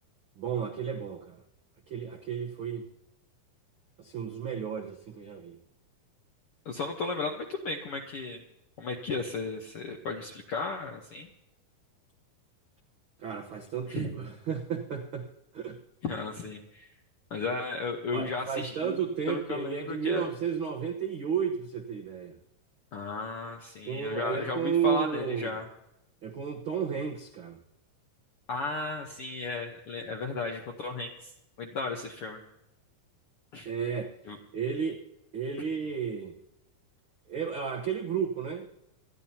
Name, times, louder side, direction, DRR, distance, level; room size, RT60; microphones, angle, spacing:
voice 1, 0.4-1.4 1.9-2.9 4.0-5.6 13.2-15.3 15.5-15.8 18.1-22.4 23.9-25.6 26.2-27.6 33.6-34.1 34.5-35.0 35.3-36.3 37.3-38.7, right 7 dB, 80° right, 1 dB, 1.1 m, -32 dB
voice 2, 6.6-8.4 8.8-11.3 13.9-14.1 16.0-16.9 17.3-19.0 19.3-20.3 22.9-25.6 28.5-31.3 31.6-32.4 33.5-33.7 34.3-34.4, left 3 dB, 70° left, 2 dB, 1.3 m, -34 dB
27.5 x 10.5 x 2.9 m, 0.84 s
omnidirectional pair, 4.0 m